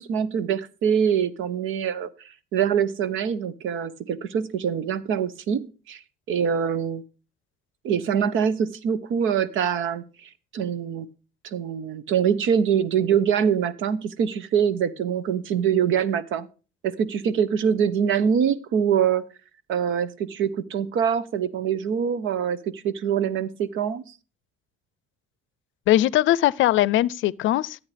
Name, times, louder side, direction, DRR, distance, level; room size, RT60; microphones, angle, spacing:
voice 1, 0.0-2.1 2.5-6.0 6.3-7.0 7.8-10.0 10.5-11.1 11.4-16.5 16.8-19.2 19.7-24.0, right 8 dB, 90° right, 0.9 m, -24 dB
voice 2, 25.9-27.9, left 14 dB, 80° left, 0.5 m, -20 dB
13.5 x 8.5 x 3.3 m
cardioid pair, 90°, 20 cm